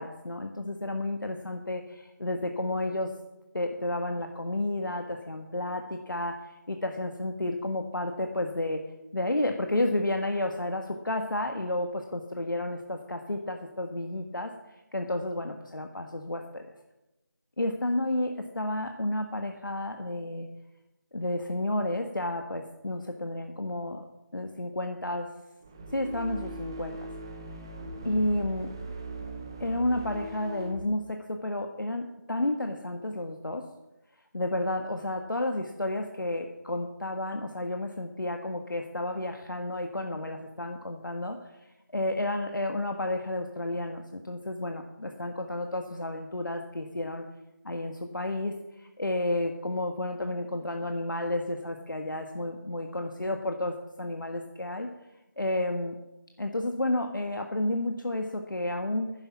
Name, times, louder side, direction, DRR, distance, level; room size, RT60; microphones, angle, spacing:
voice 1, 0.0-3.1 3.5-8.8 9.1-14.5 14.9-16.7 17.6-20.5 21.1-24.0 24.3-25.3 25.9-27.1 28.0-28.7 29.6-33.6 34.3-41.4 41.9-47.2 47.6-54.9 55.4-55.9 56.4-59.1, left 1 dB, 75° left, 4 dB, 1.4 m, -31 dB
sound 1, 25.6-30.8, right 2 dB, 10° right, 0.5 m, -40 dB
10.5 x 10.5 x 6.0 m, 0.95 s
figure-of-eight pair, 165°, 11 cm